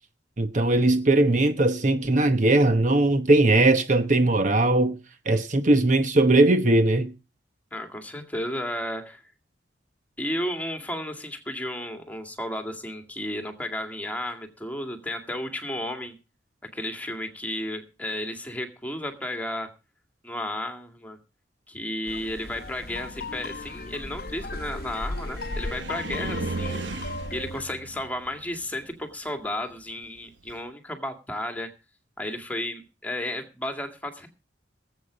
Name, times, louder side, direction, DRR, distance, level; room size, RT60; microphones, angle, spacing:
voice 1, 0.4-5.0 5.3-7.1, right 2 dB, 40° right, 1.0 m, -20 dB
voice 2, 7.7-9.2 10.2-16.1 16.7-19.7 20.2-21.2 21.7-26.8 27.3-31.7 32.2-34.3, left 1 dB, 10° left, 2.1 m, -33 dB
sound 1, 22.1-27.6, left 2 dB, 55° left, 0.9 m, -36 dB
Car, 22.4-30.6, right 3 dB, 80° right, 1.1 m, -38 dB
19.5 x 8.3 x 5.1 m
head